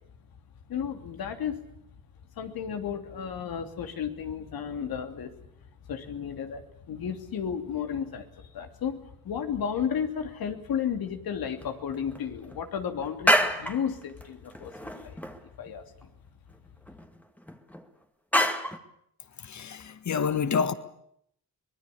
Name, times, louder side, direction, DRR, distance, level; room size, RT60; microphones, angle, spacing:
voice 1, 0.7-1.6 2.4-5.3 5.9-16.1, left 7 dB, 80° left, 3.1 m, -33 dB
sound 1, 11.6-11.7 11.9-12.6 13.0-13.9 14.2-14.3 14.5-15.4 15.7-15.8 16.0-16.1 16.9-17.8 18.3-18.8, equal, 5° left, 2.1 m, -27 dB
voice 2, 19.4-20.7, left 6 dB, 50° left, 1.7 m, -28 dB
24.5 x 20.0 x 8.6 m
cardioid pair, 95°, 35 cm